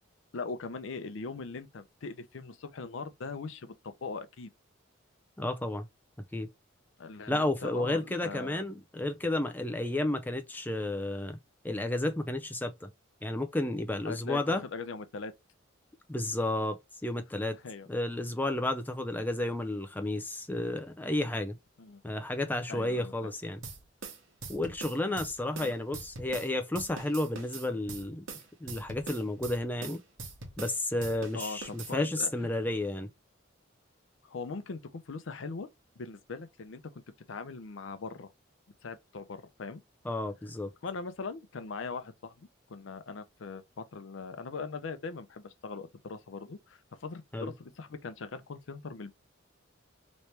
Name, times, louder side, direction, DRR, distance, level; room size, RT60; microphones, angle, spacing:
voice 1, 0.3-4.5 7.0-8.7 14.0-15.3 17.5-17.9 21.8-22.0 22.7-23.3 25.6-25.8 31.3-32.5 34.2-35.7 36.0-36.9 37.3-38.3 38.8-39.8 40.8-49.1, left 4 dB, 75° left, 0.5 m, -40 dB
voice 2, 5.4-5.9 6.3-6.5 7.3-11.4 11.6-12.9 13.2-14.6 16.1-17.5 17.9-21.6 22.0-23.6 24.5-30.0 30.6-33.1 40.0-40.7 47.3-47.5, left 1 dB, 10° left, 0.4 m, -32 dB
sound 1, 23.6-26.5 26.7-30.7 31.0-31.9, right 4 dB, 85° right, 1.2 m, -43 dB
3.1 x 2.9 x 3.2 m
head